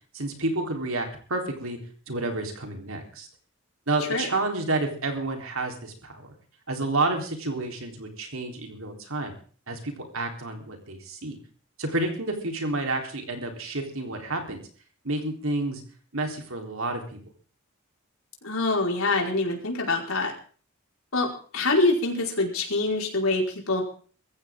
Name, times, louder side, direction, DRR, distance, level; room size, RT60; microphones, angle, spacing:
voice 1, 0.1-1.8 2.1-3.3 3.9-6.3 6.7-9.3 9.7-11.4 11.8-14.6 15.0-15.8 16.1-17.0, right 2 dB, 75° right, 3 dB, 3.9 m, -30 dB
voice 2, 4.1-4.4 18.4-20.3 21.1-23.8, left 2 dB, 85° left, 0 dB, 5.0 m, -25 dB
21.5 x 15.5 x 3.8 m, 0.42 s
head